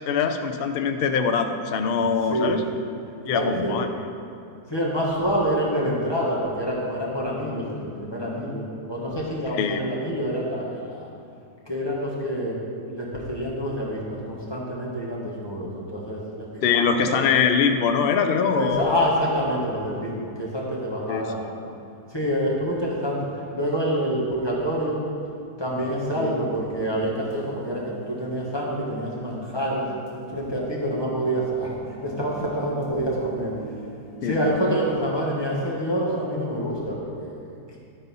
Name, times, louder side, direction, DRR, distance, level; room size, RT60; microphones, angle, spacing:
voice 1, 0.1-2.6 3.3-3.9 9.6-9.8 16.6-19.1 21.1-21.6 26.2-26.3 34.2-34.8, left 6 dB, 75° left, 6 dB, 0.5 m, -23 dB
voice 2, 3.3-3.8 4.7-11.1 11.7-12.6 12.9-17.3 18.5-21.7 22.1-25.0 25.6-29.9 30.3-31.7 32.0-33.5 34.2-37.8, equal, 15° left, -6 dB, 1.3 m, -27 dB
sound 1, 25.7-35.1, right 2 dB, 50° right, 2.4 m, -42 dB
12.0 x 4.1 x 5.4 m, 2.5 s
omnidirectional pair, 1.7 m